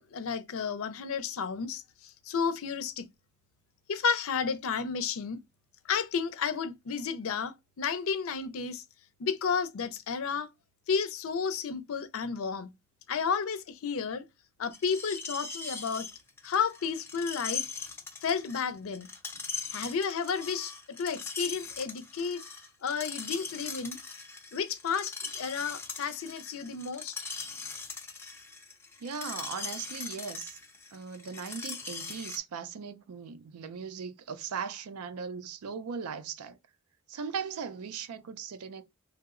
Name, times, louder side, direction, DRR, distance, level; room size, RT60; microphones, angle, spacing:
voice 1, 0.0-3.1 3.9-5.4 5.9-8.8 9.2-10.5 10.9-12.7 13.1-14.3 14.6-16.1 16.4-17.6 18.2-19.1 19.7-20.7 21.0-22.4 22.8-24.0 24.5-27.2, left 6 dB, 65° left, 0.4 m, -32 dB
Screech, 14.7-32.4, left 4 dB, 10° left, 0.4 m, -40 dB
voice 2, 29.0-30.6 30.9-36.6 37.1-38.8, right 6 dB, 85° right, 0.4 m, -38 dB
2.7 x 2.0 x 3.6 m
head